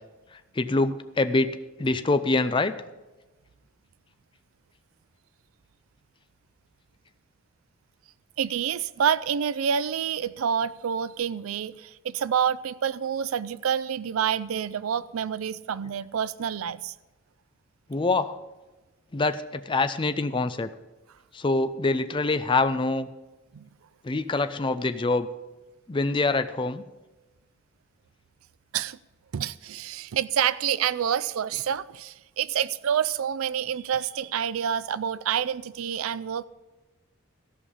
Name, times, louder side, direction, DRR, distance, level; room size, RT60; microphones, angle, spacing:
voice 1, 0.3-2.8 17.9-18.4 19.1-20.7 21.3-23.1 24.0-25.3 25.9-26.8, left 3 dB, 25° left, 0.4 m, -25 dB
voice 2, 8.4-16.9 23.5-23.7 28.7-29.0 29.3-36.5, right 8 dB, 85° right, 0.4 m, -28 dB
14.0 x 5.5 x 8.3 m
head